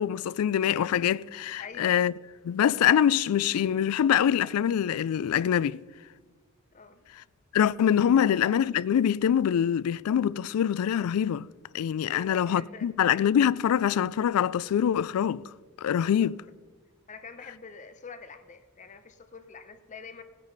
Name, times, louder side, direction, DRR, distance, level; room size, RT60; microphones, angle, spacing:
voice 1, 0.0-2.1 2.4-5.8 7.5-11.5 11.7-15.4 15.8-16.4, left 9 dB, 85° left, 0.3 m, -24 dB
voice 2, 1.6-2.0 6.7-7.0 12.1-12.9 16.0-16.3 17.1-20.2, left 5 dB, 35° left, 0.7 m, -46 dB
18.0 x 9.2 x 4.0 m
head